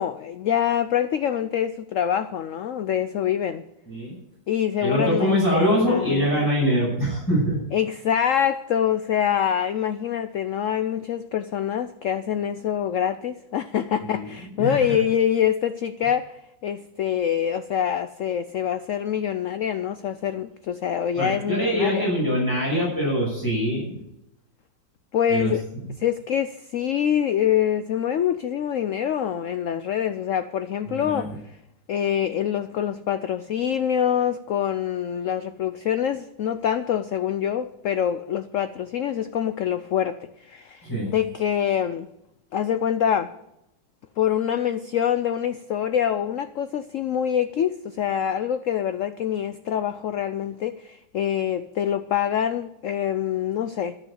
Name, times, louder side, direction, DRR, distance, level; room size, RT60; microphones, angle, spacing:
voice 1, 0.0-3.6 4.5-6.3 7.7-22.1 25.1-25.6 26.0-31.3 31.9-42.1 42.5-43.3 44.2-54.0, left 9 dB, 85° left, 0.6 m, -25 dB
voice 2, 4.8-7.6 14.0-14.2 14.6-14.8 21.2-24.0 25.3-25.5 30.9-31.3 40.9-41.1, equal, 10° left, 6.1 m, -23 dB
13.5 x 6.3 x 9.8 m
omnidirectional pair, 2.0 m